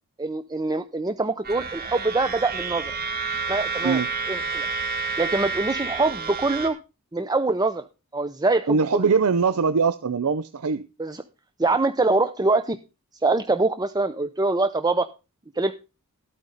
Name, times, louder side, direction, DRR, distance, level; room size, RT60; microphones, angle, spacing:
voice 1, 0.2-3.0 3.5-4.0 4.3-4.7 5.2-6.8 7.1-7.9 8.1-9.1 11.0-11.2 11.6-12.8 13.2-15.1 15.5-15.7, right 3 dB, 20° right, 10 dB, 0.6 m, -24 dB
sound 1, 1.4-6.7, right 5 dB, 45° right, 2.1 m, -29 dB
voice 2, 8.7-10.8, right 5 dB, 90° right, 13 dB, 0.6 m, -22 dB
13.5 x 9.0 x 4.0 m, 0.30 s
head